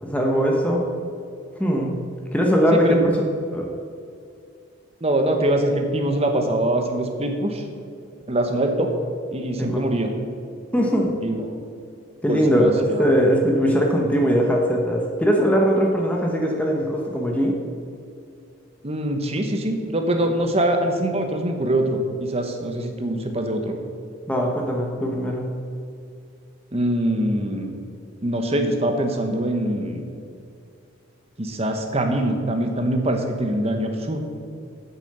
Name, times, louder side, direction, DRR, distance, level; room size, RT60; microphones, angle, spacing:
voice 1, 0.0-0.8 1.6-2.0 2.3-3.1 3.5-3.7 9.6-9.9 10.7-11.2 12.2-17.6 24.3-25.5, equal, 5° left, -1 dB, 1.0 m, -20 dB
voice 2, 5.0-7.6 8.3-8.9 9.3-10.1 11.2-11.6 12.3-13.0 18.8-23.7 26.7-27.7 28.2-30.1 31.4-34.2, right 1 dB, 30° right, 4 dB, 1.1 m, -23 dB
8.4 x 7.1 x 6.7 m, 2.4 s
head